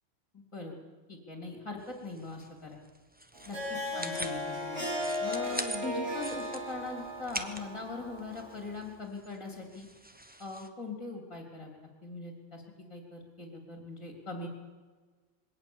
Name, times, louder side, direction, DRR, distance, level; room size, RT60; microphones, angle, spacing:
voice 1, 0.3-0.7 1.1-2.8 3.5-3.6 3.9-9.9 10.4-12.6 12.9-14.5, left 3 dB, 15° left, 2 dB, 3.1 m, -41 dB
sound 1, 1.8-10.7, right 1 dB, 10° right, 0.5 m, -44 dB
Harp, 3.3-8.8, left 1 dB, 35° right, 7.6 m, -36 dB
21.5 x 17.5 x 7.3 m, 1.4 s
omnidirectional pair, 2.1 m